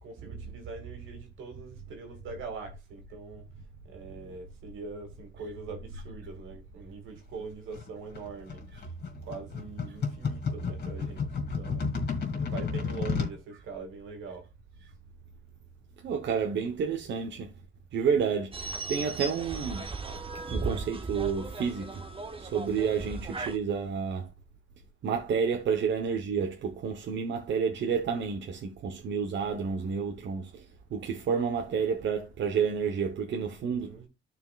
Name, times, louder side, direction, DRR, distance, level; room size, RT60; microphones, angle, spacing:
voice 1, 0.0-3.5 3.9-8.6 9.3-11.9 12.4-14.4 33.6-34.1, right 4 dB, 85° right, 2.3 m, -43 dB
sound 1, 7.7-13.4, left 5 dB, 55° left, 2.7 m, -32 dB
voice 2, 16.0-17.5 17.9-19.8 20.5-22.0 22.4-24.3 25.0-30.6 30.9-33.9, right 6 dB, 65° right, 1.1 m, -30 dB
sound 2, 18.5-23.6, right 3 dB, 25° right, 1.0 m, -37 dB
13.0 x 4.6 x 2.4 m
cardioid pair, 90°, 20 cm